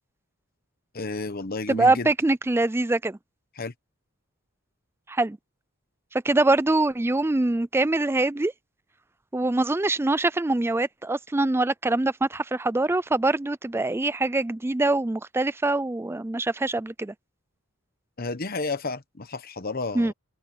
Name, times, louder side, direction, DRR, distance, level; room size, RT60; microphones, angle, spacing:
voice 1, 0.9-2.1 3.6-3.7 18.2-20.1, left 3 dB, 45° left, 1.0 m, -31 dB
voice 2, 1.7-3.2 5.1-5.4 6.1-8.5 9.3-17.1 19.9-20.1, right 2 dB, 10° right, 0.3 m, -24 dB
open air
head